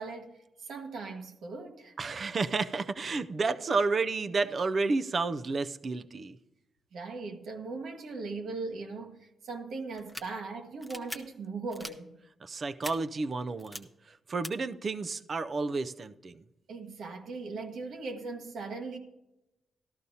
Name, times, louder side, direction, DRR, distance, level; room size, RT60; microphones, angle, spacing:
voice 1, 0.0-1.9 6.9-12.1 16.7-19.0, right 3 dB, 75° right, 1.4 m, -39 dB
voice 2, 2.0-6.4 12.4-16.4, right 4 dB, 40° right, 0.4 m, -31 dB
sound 1, 9.9-10.2 10.8-11.2 11.7-11.9 12.8-12.9 13.6-13.8 14.4-14.5, equal, ahead, 0.8 m, -40 dB
13.5 x 13.0 x 2.8 m
wide cardioid pair, 135°, 0 cm